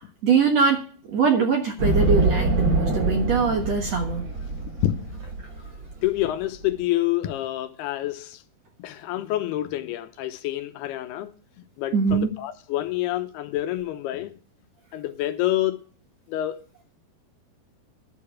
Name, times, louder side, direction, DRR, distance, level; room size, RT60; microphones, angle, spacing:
voice 1, 0.2-0.8 1.1-4.2 11.9-12.3, right 5 dB, 60° right, 1.9 m, -22 dB
sound 1, 1.8-6.7, right 2 dB, 40° right, 2.7 m, -25 dB
voice 2, 4.8-5.2 6.0-8.4 8.8-14.4 14.9-15.8 16.3-16.6, left 14 dB, 80° left, 2.8 m, -28 dB
11.0 x 6.9 x 8.7 m
omnidirectional pair, 4.6 m